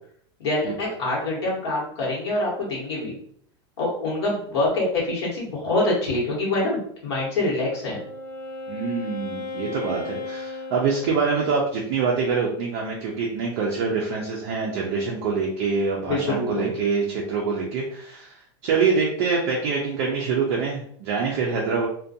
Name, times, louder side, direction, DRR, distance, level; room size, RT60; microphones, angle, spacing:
voice 1, 0.4-3.1 3.8-8.0 16.1-16.7, left 2 dB, 80° left, -5 dB, 1.0 m, -25 dB
Wind instrument woodwind instrument, 7.4-11.7, left 3 dB, 25° left, 0.7 m, -36 dB
voice 2, 8.7-18.3 18.6-21.9, right 5 dB, 35° right, -2 dB, 0.3 m, -25 dB
2.4 x 2.2 x 2.6 m, 0.63 s
supercardioid pair, 175°, 14 cm